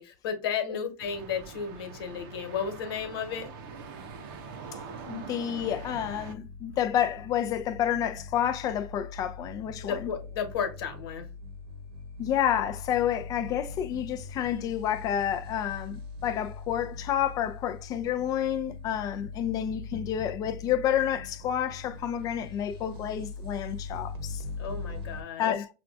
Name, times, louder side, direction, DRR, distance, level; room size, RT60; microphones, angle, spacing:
voice 1, 0.0-3.5 9.8-11.3 24.6-25.5, left 7 dB, 75° left, 1.2 m, -33 dB
sound 1, 1.0-6.3, right 5 dB, 65° right, 0.6 m, -43 dB
voice 2, 5.1-10.1 12.2-24.4 25.4-25.7, left 10 dB, 30° left, 0.4 m, -29 dB
sound 2, 5.5-25.2, left 3 dB, 85° right, 1.0 m, -41 dB
5.8 x 2.3 x 2.5 m
supercardioid pair, 145°, 13 cm